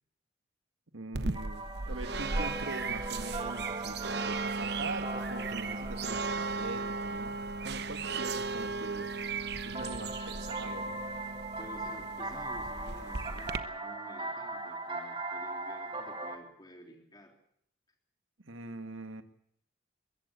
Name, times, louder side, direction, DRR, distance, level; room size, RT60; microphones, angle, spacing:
voice 1, 0.9-7.3 7.6-9.1 9.7-11.0 18.4-19.2, right 2 dB, 85° right, 8 dB, 1.8 m, -43 dB
sound 1, 1.1-13.6, right 3 dB, 55° right, 1.0 m, -36 dB
sound 2, 1.3-8.8 9.7-16.4, right 2 dB, 25° right, 1.7 m, -40 dB
voice 2, 11.6-17.3, equal, 20° left, 3 dB, 3.3 m, -51 dB
23.5 x 15.0 x 8.3 m, 0.70 s
head